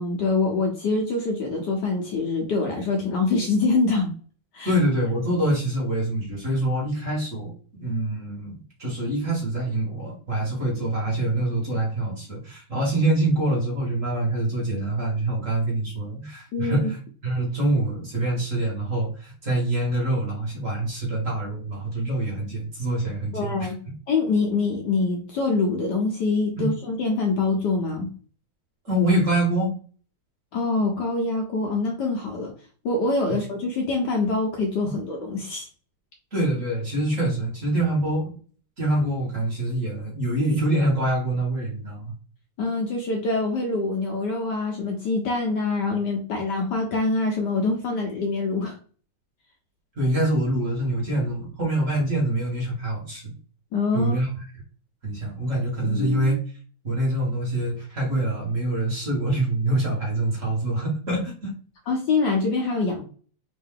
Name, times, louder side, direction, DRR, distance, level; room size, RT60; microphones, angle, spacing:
voice 1, 0.0-4.1 4.5-4.7 16.5-16.9 23.3-23.8 24.1-28.1 30.5-32.5 32.8-35.7 42.6-48.7 53.7-54.2 61.9-63.0, left 3 dB, 65° left, 1 dB, 1.2 m, -25 dB
voice 2, 4.6-7.5 7.8-17.0 17.2-23.9 26.6-26.7 28.8-29.7 34.8-34.9 36.3-38.3 38.8-42.1 49.9-53.3 53.9-54.3 55.0-56.4 56.8-61.3, right 1 dB, 40° right, -3 dB, 1.5 m, -25 dB
3.7 x 2.6 x 3.6 m, 0.41 s
omnidirectional pair, 2.3 m